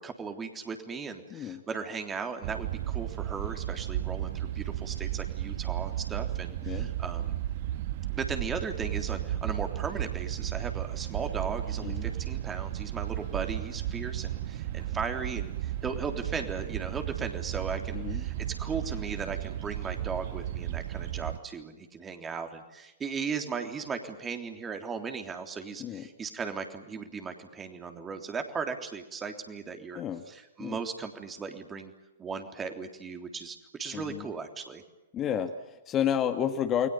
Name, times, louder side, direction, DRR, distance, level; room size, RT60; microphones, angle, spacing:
voice 1, 0.0-7.4 8.1-30.0 30.3-31.9 32.2-34.8, right 5 dB, 15° right, 6 dB, 3.5 m, -37 dB
voice 2, 1.3-1.6 6.6-6.9 11.8-12.1 17.9-18.3 25.8-26.0 29.9-30.2 30.6-30.8 33.9-34.3 35.1-36.9, left 9 dB, 25° left, 6 dB, 2.0 m, -31 dB
sound 1, 2.4-21.4, right 13 dB, 45° right, 1.3 m, -34 dB
30.0 x 22.0 x 7.2 m, 0.99 s
figure-of-eight pair, 115°, 0 cm